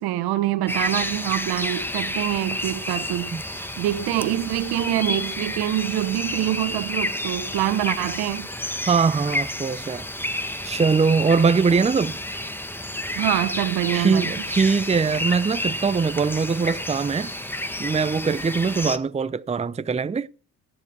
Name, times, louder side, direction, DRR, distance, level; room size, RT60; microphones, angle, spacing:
voice 1, 0.0-8.5 13.1-14.3, right 13 dB, 75° right, 1.6 m, -25 dB
sound 1, 0.7-19.0, left 1 dB, 5° left, 1.7 m, -30 dB
voice 2, 8.9-10.0 10.6-12.2 13.9-17.3 17.8-20.3, right 5 dB, 15° right, 0.6 m, -22 dB
15.5 x 10.5 x 4.8 m
hypercardioid pair, 55°, 39 cm